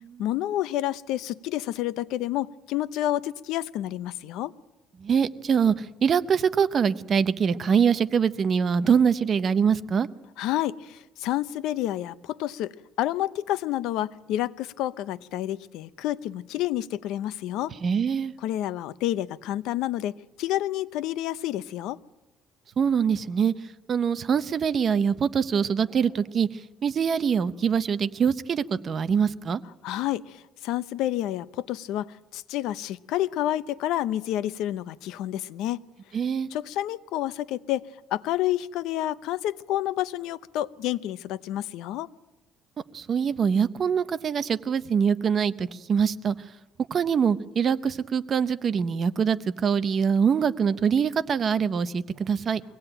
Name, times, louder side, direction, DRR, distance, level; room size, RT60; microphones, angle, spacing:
voice 1, 0.2-4.5 10.4-12.7 13.0-17.7 18.4-22.0 29.8-30.4 30.6-35.8 36.5-37.8 38.1-42.1, left 13 dB, 75° left, 16 dB, 0.7 m, -29 dB
voice 2, 5.0-10.1 17.8-18.3 22.8-23.5 23.9-26.5 26.8-29.6 36.1-36.5 42.9-46.3 46.9-52.6, right 7 dB, 35° right, 12 dB, 0.8 m, -24 dB
23.5 x 17.5 x 9.0 m, 1.0 s
cardioid pair, 155°, 0 cm